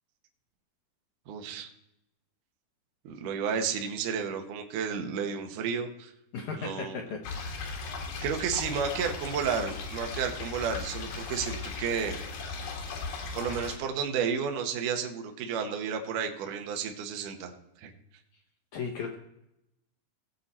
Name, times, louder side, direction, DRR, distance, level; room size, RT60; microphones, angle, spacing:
voice 1, 1.3-1.7 3.0-6.1 6.6-7.0 8.2-12.2 13.3-17.5 17.8-17.9, right 6 dB, 65° right, 4 dB, 2.3 m, -32 dB
voice 2, 6.3-7.8 18.7-19.2, left 5 dB, 70° left, 2 dB, 1.8 m, -37 dB
sound 1, 7.2-13.8, left 4 dB, 90° left, 3.7 m, -37 dB
17.5 x 7.5 x 4.2 m, 0.83 s
omnidirectional pair, 4.4 m